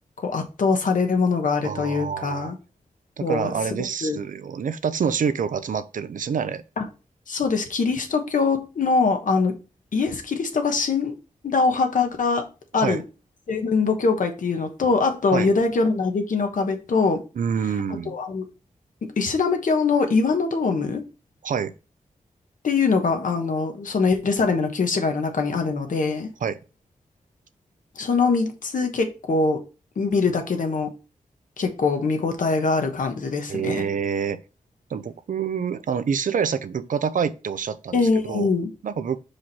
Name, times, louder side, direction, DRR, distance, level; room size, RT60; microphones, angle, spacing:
voice 1, 0.2-2.5 3.2-3.5 3.8-4.2 6.8-6.9 7.3-9.5 9.9-11.1 11.4-12.4 12.7-13.0 13.5-17.2 18.1-18.4 19.2-21.0 22.6-26.3 28.0-29.6 30.0-30.9 31.6-33.9 37.9-38.7, left 4 dB, 75° left, 1.3 m, -23 dB
voice 2, 1.6-2.5 3.2-6.6 12.8-13.0 15.3-15.5 17.4-18.1 21.4-21.7 26.4-26.6 33.5-34.4 34.9-38.5 38.8-39.2, right 7 dB, 75° right, 0.6 m, -27 dB
6.1 x 4.9 x 4.2 m
wide cardioid pair, 170°, 14 cm